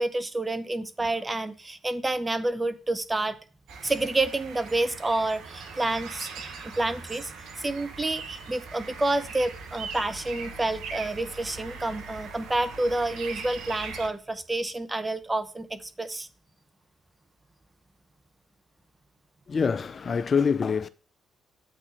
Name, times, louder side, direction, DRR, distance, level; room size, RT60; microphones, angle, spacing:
voice 1, 0.0-3.4 3.8-6.3 6.6-7.3 7.6-16.3, right 2 dB, 20° right, 0.8 m, -29 dB
sound 1, 3.7-14.1, right 5 dB, 70° right, 1.0 m, -40 dB
voice 2, 19.5-20.9, left 6 dB, 45° left, 0.4 m, -25 dB
8.2 x 3.7 x 5.4 m
hypercardioid pair, 45°, 0 cm